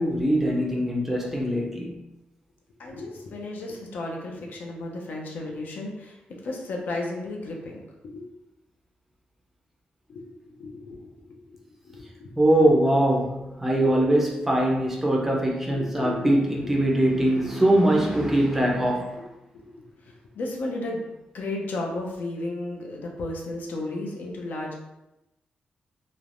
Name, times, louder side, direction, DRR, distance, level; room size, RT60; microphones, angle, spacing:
voice 1, 0.0-2.0 12.4-19.2, right 1 dB, 10° right, -2 dB, 0.4 m, -22 dB
voice 2, 2.8-6.2 6.4-7.9 8.1-8.2 10.1-10.3 10.6-11.1 11.8-12.3 15.7-16.3 16.6-16.7 17.3-17.5 19.5-19.6 20.4-21.1 21.3-24.7, left 2 dB, 75° left, 0 dB, 0.5 m, -33 dB
3.1 x 2.1 x 2.5 m, 0.94 s
wide cardioid pair, 165°, 3 cm